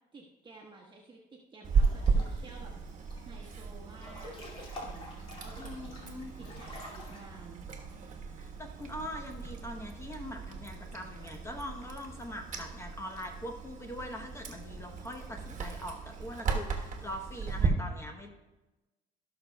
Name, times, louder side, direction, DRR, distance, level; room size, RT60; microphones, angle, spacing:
voice 1, 0.1-2.7 3.2-4.4 4.8-5.9 6.4-7.7, right 3 dB, 30° right, -3 dB, 1.2 m, -52 dB
Chewing mastication, 1.6-17.7, right 5 dB, 45° right, 1.3 m, -35 dB
Breathing / Bathtub (filling or washing) / Splash splatter, 1.7-2.5 2.9-3.5 3.9-7.2, left 1 dB, 30° left, 2.5 m, -47 dB
voice 2, 5.6-6.3 8.4-18.3, left 1 dB, 15° left, 3 dB, 0.9 m, -42 dB
17.5 x 6.1 x 2.3 m, 1.1 s
cardioid pair, 110°, 17 cm